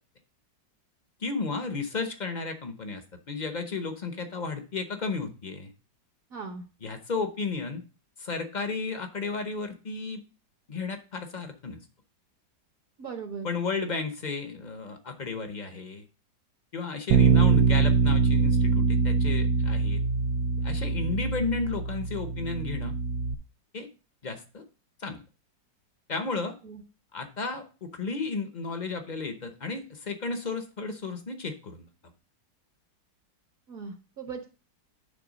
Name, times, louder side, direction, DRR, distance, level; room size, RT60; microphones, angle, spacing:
voice 1, 1.2-5.7 6.8-7.8 8.2-10.2 10.7-11.8 13.4-16.0 16.7-20.0 20.6-23.0 23.7-23.9 24.2-24.6 25.0-25.2 26.1-26.5 27.1-31.9, left 4 dB, 45° left, 7 dB, 0.5 m, -33 dB
voice 2, 6.3-6.6 13.0-13.5 26.6-26.8 33.7-34.4, right 5 dB, 55° right, 4 dB, 1.2 m, -38 dB
Bass guitar, 17.1-23.3, right 5 dB, 70° right, 0.9 m, -23 dB
10.0 x 3.4 x 5.0 m, 0.34 s
omnidirectional pair, 2.0 m